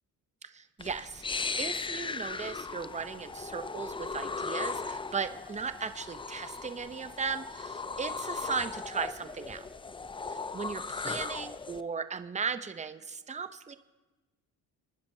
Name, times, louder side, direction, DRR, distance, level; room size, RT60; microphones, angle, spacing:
voice 1, 0.4-1.2 1.6-9.6 10.3-13.8, right 5 dB, 20° right, 10 dB, 0.6 m, -37 dB
sound 1, 0.8-11.8, left 4 dB, 15° left, 0.3 m, -37 dB
28.0 x 10.0 x 2.7 m, 1.2 s
cardioid pair, 75°, 40 cm